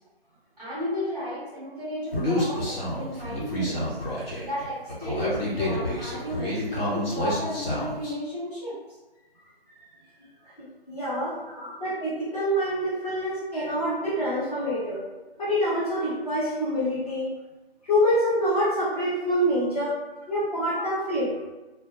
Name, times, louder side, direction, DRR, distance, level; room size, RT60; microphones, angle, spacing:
voice 1, 0.6-4.0 4.4-8.7 11.4-11.7 13.0-13.2 13.5-13.8 20.8-20.9, left 1 dB, ahead, -12 dB, 1.0 m, -34 dB
Human voice, 2.1-8.1, left 1 dB, 65° left, 1.1 m, -29 dB
voice 2, 10.9-11.4 11.8-15.0 15.4-17.3 17.8-20.0 20.3-21.3, equal, 35° left, -9 dB, 0.9 m, -26 dB
2.2 x 2.1 x 2.9 m, 1.1 s
figure-of-eight pair, 170°, 31 cm